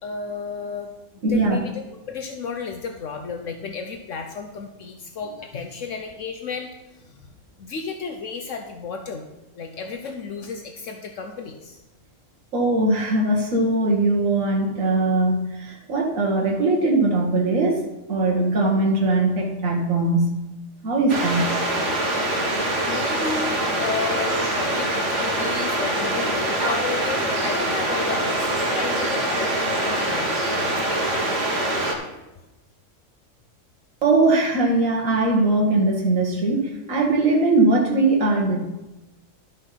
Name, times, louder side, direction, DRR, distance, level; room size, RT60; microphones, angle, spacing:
voice 1, 0.0-7.1 7.6-9.3 9.5-11.8 22.8-31.0, left 5 dB, 70° left, 5 dB, 1.1 m, -33 dB
voice 2, 1.2-1.6 12.5-17.8 18.1-20.3 20.8-21.6 34.0-38.6, right 2 dB, 80° right, -1 dB, 1.8 m, -20 dB
sound 1, 21.1-32.0, right 1 dB, 65° right, 2.0 m, -24 dB
12.0 x 5.3 x 5.7 m, 1.0 s
omnidirectional pair, 1.3 m